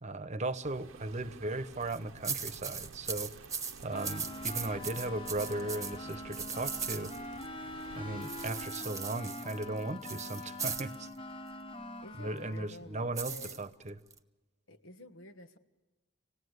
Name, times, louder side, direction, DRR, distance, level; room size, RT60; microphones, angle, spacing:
voice 1, 0.0-3.3 3.8-7.1 8.0-11.1 12.2-13.9, right 2 dB, 35° right, 13 dB, 0.9 m, -37 dB
sound 1, 0.6-8.7, right 4 dB, 85° right, 0.8 m, -52 dB
sound 2, 1.7-2.0 2.2-7.5 8.2-10.9 13.1-14.2, right 6 dB, 15° right, 1.2 m, -39 dB
sound 3, 3.9-12.7, left 1 dB, 25° left, 0.9 m, -44 dB
voice 2, 7.9-8.4 12.0-13.6 14.7-15.6, left 1 dB, 80° left, 9 dB, 1.4 m, -50 dB
27.5 x 18.0 x 8.1 m, 1.2 s
head